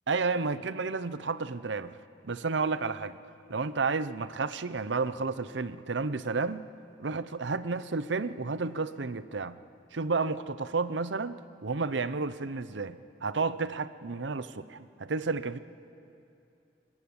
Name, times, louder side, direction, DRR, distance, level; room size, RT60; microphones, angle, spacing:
voice 1, 0.1-1.9 2.2-3.2 3.5-6.7 7.0-9.6 9.9-15.6, right 4 dB, 85° right, 14 dB, 0.8 m, -31 dB
22.0 x 20.5 x 8.8 m, 2.7 s
head